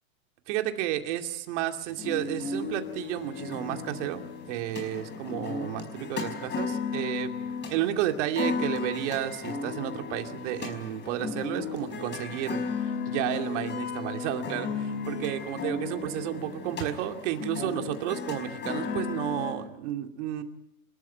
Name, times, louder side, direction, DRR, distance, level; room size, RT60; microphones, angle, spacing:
voice 1, 0.5-7.3 7.7-20.4, right 12 dB, 55° right, 5 dB, 2.6 m, -32 dB
sound 1, 2.0-19.5, left 5 dB, 25° left, 4.9 m, -35 dB
27.0 x 13.5 x 9.3 m, 0.80 s
hypercardioid pair, 130°, 42 cm